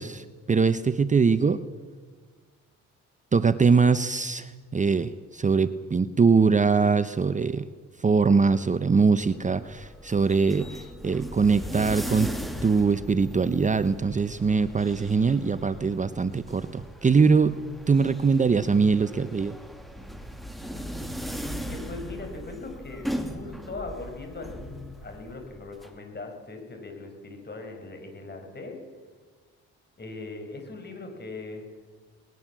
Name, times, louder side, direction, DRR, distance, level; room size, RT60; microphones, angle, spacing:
voice 1, 0.0-1.6 3.3-7.7 8.0-12.3 12.6-17.6 17.9-19.5, right 5 dB, 25° right, 12 dB, 0.8 m, -22 dB
sound 1, 9.1-25.9, equal, ahead, 2.6 m, -38 dB
voice 2, 21.6-28.8 30.0-31.7, left 3 dB, 35° left, 4 dB, 6.0 m, -40 dB
20.5 x 20.0 x 7.5 m, 1.5 s
cardioid pair, 90°, 30 cm